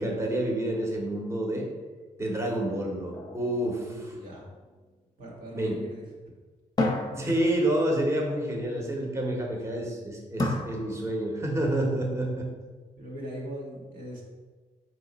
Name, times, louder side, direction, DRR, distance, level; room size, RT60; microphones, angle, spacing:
voice 1, 0.0-1.7 2.2-4.1 5.5-5.7 7.1-12.5, right 1 dB, 20° right, 0 dB, 0.9 m, -28 dB
sound 1, 3.1-4.7 6.8-8.1 10.4-11.5, left 2 dB, 30° left, 0.7 m, -33 dB
voice 2, 3.6-4.5 5.2-6.0 13.0-14.2, equal, 80° right, -4 dB, 1.3 m, -40 dB
3.8 x 2.9 x 4.0 m, 1.3 s
cardioid pair, 65°, 14 cm